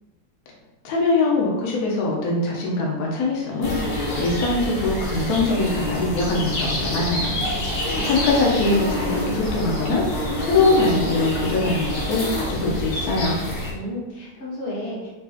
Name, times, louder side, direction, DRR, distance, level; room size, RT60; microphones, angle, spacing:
voice 1, 0.8-7.4 7.7-13.4, left 2 dB, 65° left, -2 dB, 1.1 m, -23 dB
sound 1, 3.3-4.8 6.8-7.0 7.4-9.0, right 2 dB, 55° right, 0.7 m, -37 dB
sound 2, 3.6-13.7, left 1 dB, 90° left, 1.6 m, -27 dB
voice 2, 7.5-8.2 13.7-15.1, left 1 dB, 50° left, -7 dB, 1.0 m, -33 dB
4.6 x 2.7 x 2.4 m, 1.1 s
omnidirectional pair, 1.9 m